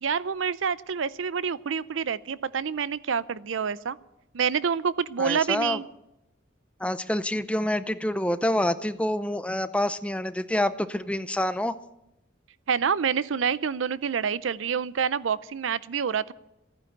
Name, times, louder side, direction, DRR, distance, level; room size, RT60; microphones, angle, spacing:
voice 1, 0.0-4.0 4.3-5.9 12.7-16.3, right 6 dB, 85° right, 18 dB, 0.5 m, -27 dB
voice 2, 5.2-5.8 6.8-11.8, left 1 dB, 5° left, 12 dB, 0.5 m, -27 dB
14.5 x 9.8 x 9.1 m, 0.89 s
head